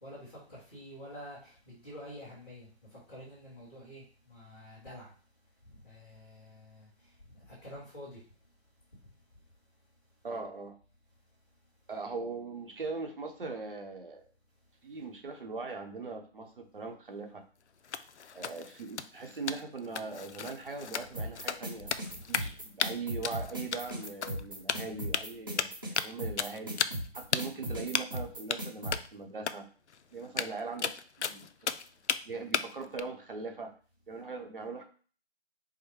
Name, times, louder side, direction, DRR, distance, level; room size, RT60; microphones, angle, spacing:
voice 1, 0.0-2.7 2.9-4.0 4.3-5.1 5.8-6.9 7.5-8.2 22.1-22.2, equal, 10° left, -11 dB, 1.3 m, -48 dB
voice 2, 10.2-10.8 11.9-14.2 14.8-17.4 18.3-21.9 22.3-25.7 26.0-26.8 27.1-29.7 30.1-31.5 32.2-33.7 34.1-34.8, right 4 dB, 55° right, 3 dB, 0.9 m, -40 dB
sound 1, 17.8-22.5 22.8-22.9 23.2-24.4 24.7-25.2 25.6-26.1 26.4-27.1 27.3-27.4 27.9-28.2 28.5-28.6 28.9-29.1 29.5-29.6 29.9-30.0 30.2-32.2 32.5-33.0, left 7 dB, 90° left, 0.5 m, -34 dB
sound 2, 21.1-28.9, right 1 dB, 20° right, 0.8 m, -37 dB
4.8 x 2.1 x 4.6 m, 0.40 s
figure-of-eight pair, 165°, 33 cm